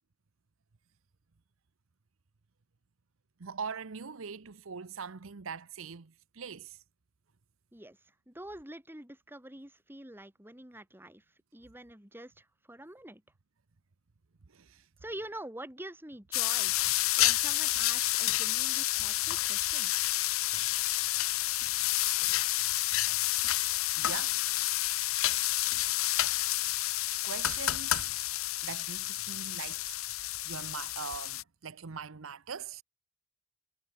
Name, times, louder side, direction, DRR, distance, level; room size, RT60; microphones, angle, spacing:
voice 1, 3.4-6.8 14.5-14.8 21.9-22.2 23.5-23.6 24.0-24.4 27.2-28.1 28.6-29.9 30.4-32.8, right 6 dB, 75° right, 0.8 m, -42 dB
voice 2, 8.3-11.2 11.5-13.2 15.0-16.7 17.2-19.9, right 1 dB, 10° right, 3.0 m, -46 dB
sound 1, 16.3-31.4, left 16 dB, 85° left, 0.8 m, -29 dB
head